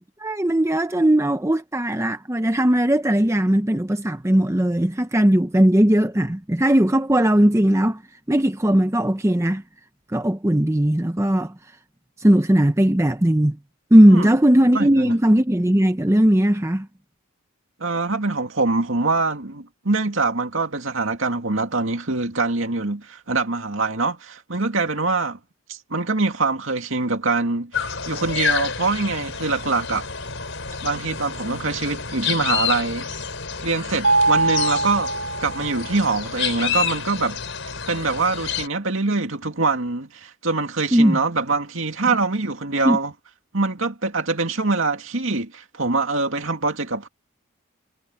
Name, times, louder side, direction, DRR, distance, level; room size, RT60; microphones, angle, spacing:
voice 1, 0.0-8.0 8.3-9.6 10.1-11.5 12.2-13.6 13.9-16.9 40.9-41.2 42.8-43.0, right 1 dB, 15° right, 0.7 m, -18 dB
voice 2, 14.7-15.2 17.8-25.4 25.7-30.1 30.8-33.1 33.6-35.1 35.4-37.4 37.9-43.1 43.5-47.1, right 3 dB, 65° right, 2.4 m, -24 dB
sound 1, 27.7-38.7, left 7 dB, 60° left, 5.6 m, -29 dB
Mallet percussion, 34.0-36.0, right 3 dB, 90° right, 2.2 m, -22 dB
head